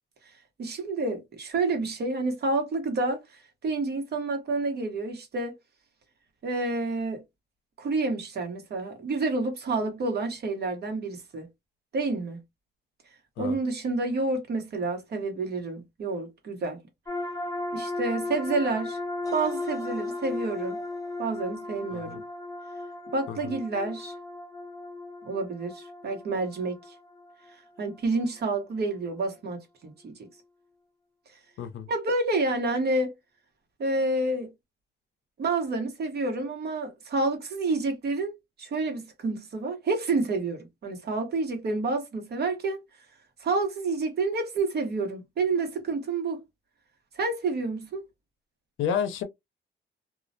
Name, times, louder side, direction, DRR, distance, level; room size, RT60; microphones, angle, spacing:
voice 1, 0.6-3.2 3.6-5.5 6.4-7.2 7.8-11.5 11.9-12.4 13.4-16.8 17.7-19.0 19.3-20.8 21.2-22.2 23.1-24.1 25.2-26.8 27.8-30.3 31.9-33.1 33.8-34.5 35.4-42.8 43.4-46.4 47.1-48.0, right 3 dB, 55° right, 1.0 m, -29 dB
sound 1, 17.1-28.4, left 2 dB, 15° left, 0.6 m, -36 dB
voice 2, 31.6-31.9 48.8-49.2, left 7 dB, 80° left, 0.6 m, -30 dB
2.3 x 2.0 x 2.6 m
cardioid pair, 90°, 20 cm